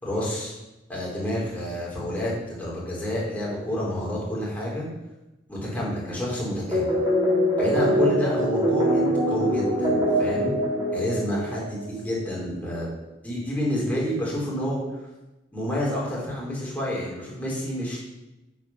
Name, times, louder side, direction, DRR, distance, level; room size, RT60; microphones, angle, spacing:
voice 1, 0.0-0.5 0.9-4.9 5.5-6.9 7.6-10.5 10.9-12.9 13.2-14.8 15.5-18.0, equal, 10° left, -6 dB, 4.2 m, -29 dB
sound 1, 6.7-11.9, equal, 25° right, 4.2 m, -23 dB
9.0 x 8.4 x 6.0 m, 1.0 s
head